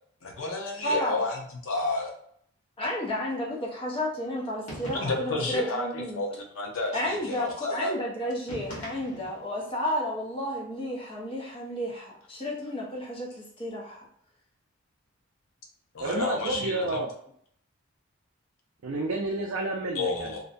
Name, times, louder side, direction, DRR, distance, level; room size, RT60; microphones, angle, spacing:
voice 1, 0.2-2.2 4.9-7.9 15.9-17.0 19.9-20.4, left 2 dB, 70° left, 0 dB, 0.6 m, -31 dB
voice 2, 0.8-1.2 2.8-6.2 6.9-14.1, equal, 25° left, -4 dB, 0.7 m, -32 dB
sound 1, 4.7-5.4 8.5-9.5, equal, 90° left, 1.1 m, -41 dB
voice 3, 16.0-17.1 18.8-20.4, right 2 dB, 60° right, -1 dB, 0.4 m, -30 dB
2.6 x 2.1 x 2.5 m, 0.65 s
head